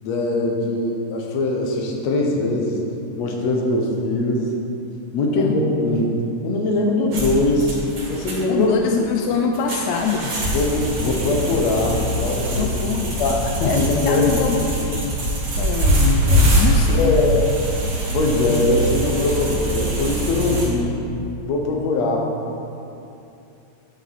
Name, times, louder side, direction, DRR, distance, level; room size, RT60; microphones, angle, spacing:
voice 1, 0.0-2.8 3.1-4.5 5.1-6.1 6.4-8.7 10.5-12.7 13.2-14.4 16.9-17.4 18.1-21.0 21.5-22.3, left 2 dB, 70° left, 0 dB, 2.2 m, -21 dB
sound 1, 7.1-20.7, equal, 55° right, 3.3 m, -23 dB
voice 2, 8.5-10.4 12.6-13.2 13.6-15.2 15.6-17.4, left 6 dB, 85° left, 3 dB, 1.9 m, -24 dB
10.5 x 7.4 x 4.1 m, 2.7 s
omnidirectional pair, 3.3 m